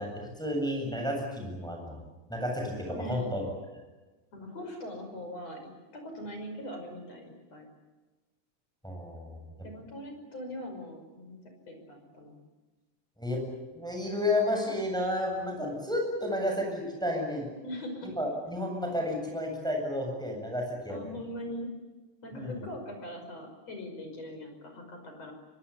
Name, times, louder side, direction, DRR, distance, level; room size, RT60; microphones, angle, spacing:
voice 1, 0.0-2.0 2.3-3.4 8.8-9.7 13.2-13.4 13.7-17.5 18.2-21.0 22.3-22.6, left 1 dB, ahead, 1 dB, 7.3 m, -31 dB
voice 2, 2.9-3.3 4.3-5.6 5.9-7.7 9.6-11.4 11.7-12.4 17.6-18.2 20.9-21.7 22.2-25.3, left 1 dB, 35° left, 4 dB, 6.4 m, -41 dB
24.5 x 24.0 x 8.7 m, 1.2 s
omnidirectional pair, 5.1 m